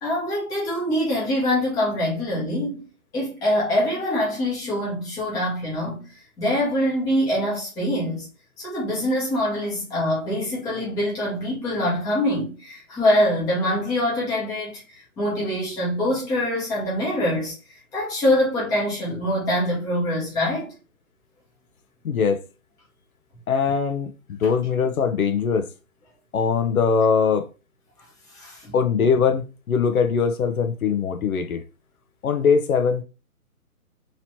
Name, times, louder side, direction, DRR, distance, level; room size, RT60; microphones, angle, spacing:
voice 1, 0.0-2.8 3.1-6.0 6.4-8.3 8.6-14.8 15.2-17.5 17.9-20.7 28.3-28.7, left 1 dB, 10° left, 0.9 m, -24 dB
voice 2, 22.0-22.4 23.5-25.7 26.3-27.4 28.7-31.6 32.2-33.0, left 6 dB, 75° left, 0.7 m, -21 dB
3.0 x 2.9 x 2.8 m
hypercardioid pair, 145°, 44 cm